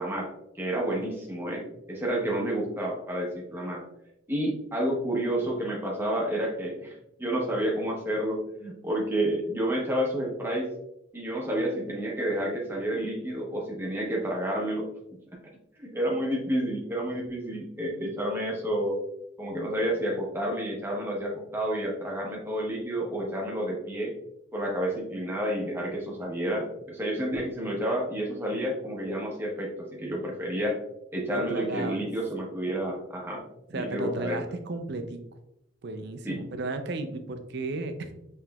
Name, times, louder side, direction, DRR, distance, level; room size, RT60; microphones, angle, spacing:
voice 1, 0.0-3.8 4.3-10.7 11.1-14.9 15.8-19.0 19.4-24.1 24.5-30.8 31.1-33.4 33.7-34.4 36.2-36.4, right 1 dB, 10° right, -2 dB, 0.8 m, -30 dB
voice 2, 31.3-32.1 33.7-35.2 35.8-38.1, right 2 dB, 55° right, 8 dB, 0.4 m, -34 dB
5.7 x 3.1 x 2.3 m, 0.84 s
head